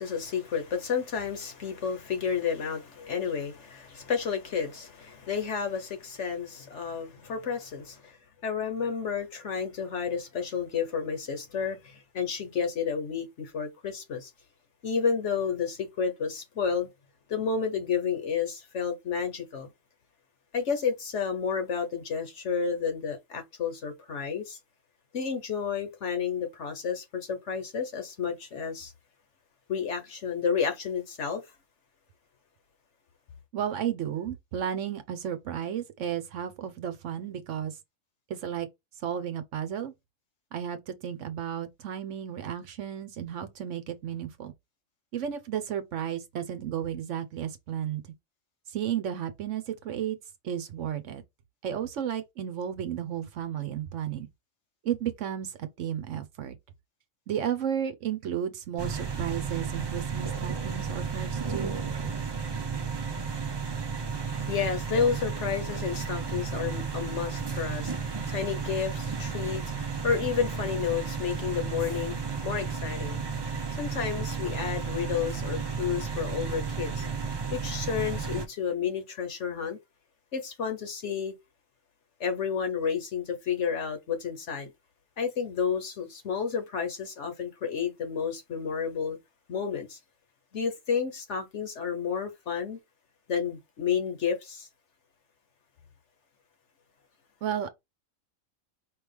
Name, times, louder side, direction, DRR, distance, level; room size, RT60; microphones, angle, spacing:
voice 1, 0.0-8.2 8.4-14.3 14.8-16.9 17.3-19.7 20.5-24.6 25.1-28.9 29.7-31.4 64.1-77.2 77.5-79.8 80.3-81.3 82.2-84.7 85.2-89.2 89.5-90.0 90.5-92.8 93.3-94.7, left 6 dB, 60° left, 1.3 m, -31 dB
voice 2, 33.5-37.8 38.3-38.7 39.0-39.9 40.5-44.5 45.1-48.0 48.7-50.2 50.4-51.2 51.6-54.3 54.8-56.6 57.3-61.8 97.4-97.7, right 9 dB, 65° right, 1.0 m, -33 dB
sound 1, 58.8-78.5, right 6 dB, 35° right, 0.4 m, -33 dB
4.8 x 3.1 x 3.4 m
omnidirectional pair, 1.4 m